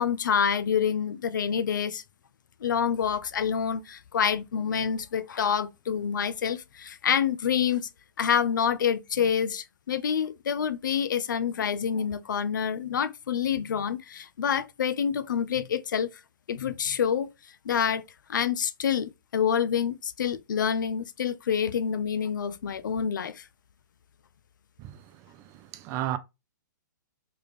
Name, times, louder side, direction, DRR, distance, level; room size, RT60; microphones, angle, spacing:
voice 1, 0.0-2.0 2.6-7.9 8.2-16.1 16.5-17.3 17.7-18.0 18.3-23.4, left 7 dB, 75° left, 0.4 m, -27 dB
voice 2, 24.8-26.2, right 12 dB, 25° right, 0.3 m, -35 dB
3.3 x 2.3 x 3.3 m
hypercardioid pair, 130°, 10 cm